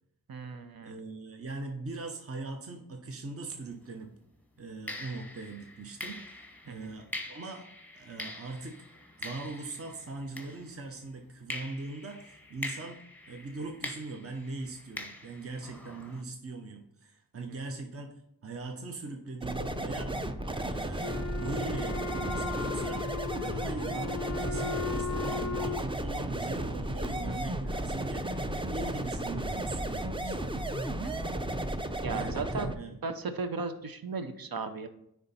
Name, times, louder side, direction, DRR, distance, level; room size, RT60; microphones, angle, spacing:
voice 1, 0.3-0.9 6.7-6.9 17.5-17.6 31.0-31.3 32.0-32.7 33.0-34.9, right 4 dB, 70° right, 8 dB, 0.8 m, -36 dB
voice 2, 0.8-4.1 4.6-6.2 6.6-7.6 7.9-8.8 9.2-13.0 13.3-18.1 18.4-20.1 20.5-23.1 23.4-30.3 32.1-33.0, right 3 dB, 40° right, 4 dB, 0.8 m, -40 dB
sound 1, 3.7-3.9 4.9-11.0 11.5-16.2, left 1 dB, 5° left, 1.1 m, -44 dB
sound 2, 19.4-32.7, right 1 dB, 15° right, 0.6 m, -34 dB
Wind instrument woodwind instrument, 21.0-25.9, left 5 dB, 45° left, 0.5 m, -37 dB
9.3 x 3.5 x 4.2 m, 0.76 s
wide cardioid pair, 55°, 36 cm